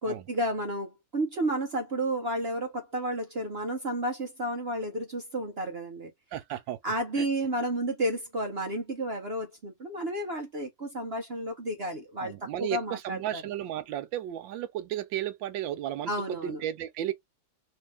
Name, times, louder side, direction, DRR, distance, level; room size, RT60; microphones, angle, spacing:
voice 1, 0.0-6.1 6.8-13.4 16.1-16.6, right 1 dB, 50° right, 0.7 m, -32 dB
voice 2, 6.3-6.8 7.2-7.3 12.2-17.1, right 12 dB, 80° right, 1.4 m, -34 dB
3.3 x 2.8 x 3.3 m
omnidirectional pair, 2.0 m